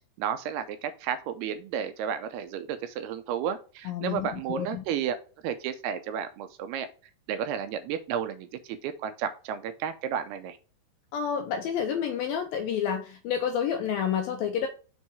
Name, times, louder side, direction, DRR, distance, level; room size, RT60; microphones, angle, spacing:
voice 1, 0.2-5.2 5.4-6.9 7.3-10.6, right 8 dB, 80° right, 2.4 m, -32 dB
voice 2, 3.9-4.8 11.1-14.7, left 8 dB, 80° left, 2.1 m, -29 dB
6.2 x 4.5 x 4.5 m
omnidirectional pair, 4.8 m